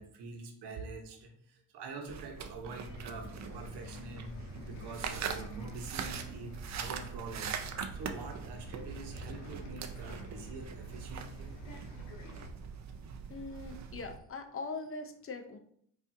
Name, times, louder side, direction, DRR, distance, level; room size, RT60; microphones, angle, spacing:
voice 1, 0.0-11.5 11.8-12.1, right 3 dB, 65° right, 3 dB, 1.0 m, -45 dB
sound 1, 2.1-14.2, right 6 dB, 40° right, 0.5 m, -42 dB
Bus, 2.8-12.5, left 1 dB, 80° left, 0.8 m, -49 dB
voice 2, 13.3-15.6, left 3 dB, 30° left, 7 dB, 0.6 m, -41 dB
4.8 x 2.7 x 2.6 m, 0.65 s
supercardioid pair, 65°, 43 cm